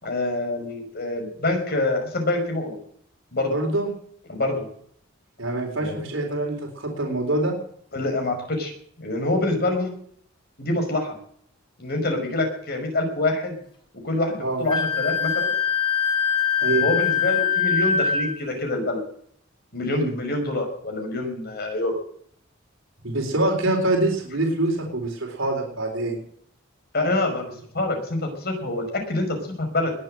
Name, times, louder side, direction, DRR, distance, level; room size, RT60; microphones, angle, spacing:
voice 1, 0.0-2.7 3.3-3.5 4.3-4.6 5.8-6.0 7.9-8.7 9.0-9.9 10.6-11.1 11.8-13.6 14.0-15.5 16.8-19.0 19.7-22.0 26.9-29.9, left 2 dB, 55° left, 3 dB, 5.5 m, -26 dB
voice 2, 3.5-3.9 5.4-7.5 14.4-14.6 16.6-16.8 19.9-20.1 23.0-26.2, right 2 dB, 85° right, 0 dB, 4.1 m, -25 dB
Wind instrument woodwind instrument, 14.7-18.4, left 7 dB, 25° left, 5.0 m, -23 dB
20.5 x 7.9 x 7.8 m, 0.63 s
head